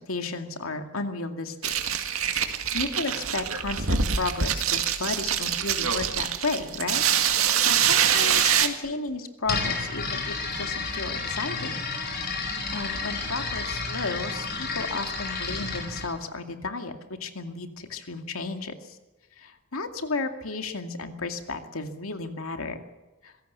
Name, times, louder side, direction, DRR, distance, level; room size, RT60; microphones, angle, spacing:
voice 1, 0.1-1.7 2.1-16.9 17.2-18.7 19.4-22.8, left 3 dB, 90° left, 6 dB, 2.3 m, -33 dB
sound 1, 1.6-8.7, right 8 dB, 90° right, 2.1 m, -24 dB
sound 2, 9.4-16.1, left 4 dB, 50° left, 5.4 m, -31 dB
25.5 x 17.0 x 6.9 m, 1.1 s
head